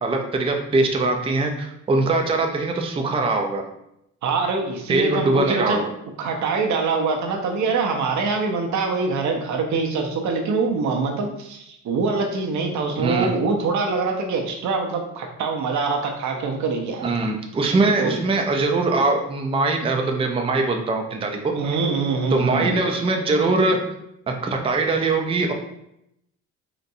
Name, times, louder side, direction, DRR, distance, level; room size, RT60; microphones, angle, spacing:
voice 1, 0.0-3.6 4.9-5.9 13.0-13.3 17.0-21.5 22.3-23.8 24.3-25.5, right 3 dB, 20° right, 3 dB, 0.4 m, -22 dB
voice 2, 4.2-5.8 6.2-17.1 18.0-18.2 21.5-22.8, right 4 dB, 70° right, 2 dB, 0.6 m, -24 dB
3.8 x 2.2 x 2.7 m, 0.79 s
cardioid pair, 90°, 30 cm